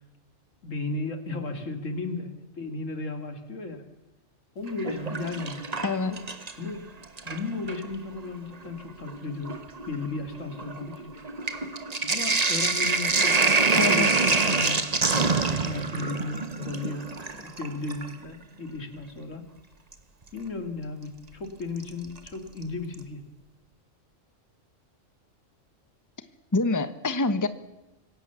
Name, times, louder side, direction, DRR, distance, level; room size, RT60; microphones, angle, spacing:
voice 1, 0.6-2.3 2.5-3.8 4.5-5.6 6.0-6.2 6.6-6.9 7.2-9.6 9.9-11.1 12.1-14.8 15.1-15.3 15.6-19.5 20.3-23.2, left 3 dB, 80° left, 7 dB, 3.0 m, -35 dB
Sink (filling or washing), 4.7-6.7 7.0-7.9 8.7-8.8 9.0-18.1 19.9-20.0 21.8-22.3 22.6-22.7 22.9-23.0, right 4 dB, 35° right, 1.3 m, -26 dB
voice 2, 5.8-6.2 13.8-14.1 26.5-27.5, left 3 dB, 15° left, 12 dB, 1.1 m, -25 dB
26.0 x 16.5 x 7.1 m, 0.95 s
omnidirectional pair, 1.3 m